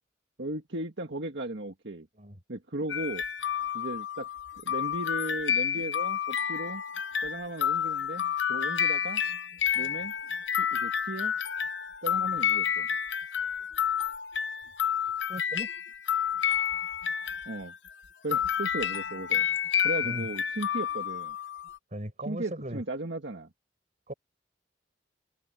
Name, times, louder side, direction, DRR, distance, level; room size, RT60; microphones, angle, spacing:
voice 1, 0.4-2.1 2.5-3.2 3.7-4.3 4.6-6.8 7.2-9.2 9.7-10.1 10.6-11.3 12.0-12.9 17.5-17.7 18.2-19.4 19.8-21.4 22.3-23.5, right 2 dB, 70° right, 1.8 m, -36 dB
sound 1, 2.9-17.9 18.3-21.8, left 8 dB, 80° left, 0.9 m, -30 dB
voice 2, 15.3-15.7 20.0-20.3 21.9-22.8 24.1-24.2, right 1 dB, 40° right, 7.1 m, -38 dB
head